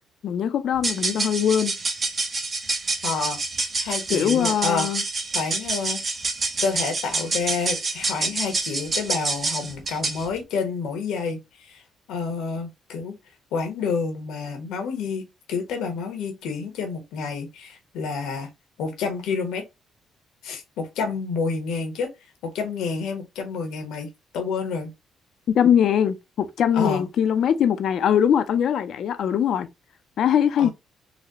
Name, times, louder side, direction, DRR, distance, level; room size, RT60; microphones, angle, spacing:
voice 1, 0.2-1.7 4.1-5.0 25.5-29.7 30.2-30.7, left 9 dB, 70° left, 0.5 m, -21 dB
sound 1, 0.7-10.3, right 3 dB, 35° right, 0.8 m, -27 dB
voice 2, 3.0-3.4 3.8-5.0 5.3-6.0 6.6-11.8 12.1-13.2 13.5-18.5 18.8-19.6 20.4-22.1 22.4-24.9 26.7-27.1 30.6-30.7, left 5 dB, 90° left, 1.1 m, -29 dB
4.0 x 2.1 x 2.9 m
cardioid pair, 90°, 0 cm